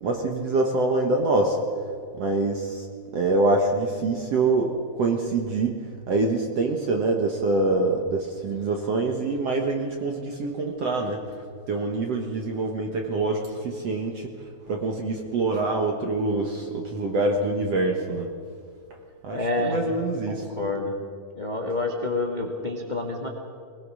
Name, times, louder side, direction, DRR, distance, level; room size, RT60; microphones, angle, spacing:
voice 1, 0.0-1.6 2.2-2.9 3.1-14.4 14.7-18.3 19.2-20.5, right 2 dB, 60° right, 2 dB, 1.8 m, -25 dB
voice 2, 19.3-19.8 20.3-21.0 21.3-23.3, left 2 dB, 35° left, 1 dB, 0.7 m, -28 dB
21.0 x 21.0 x 6.3 m, 2.2 s
omnidirectional pair, 4.5 m